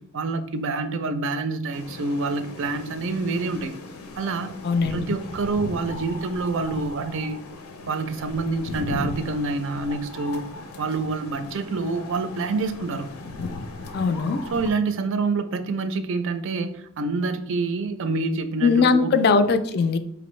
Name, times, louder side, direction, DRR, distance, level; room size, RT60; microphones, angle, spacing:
voice 1, 0.1-3.7 4.2-4.5 4.9-7.4 7.9-10.5 10.8-13.1 14.5-19.1, right 3 dB, 60° right, 9 dB, 0.4 m, -27 dB
sound 1, 1.7-14.7, left 3 dB, 90° left, 0.6 m, -37 dB
voice 2, 4.6-5.1 13.9-14.4 18.6-20.0, left 4 dB, 50° left, 10 dB, 0.3 m, -20 dB
5.0 x 2.6 x 3.1 m, 0.76 s
head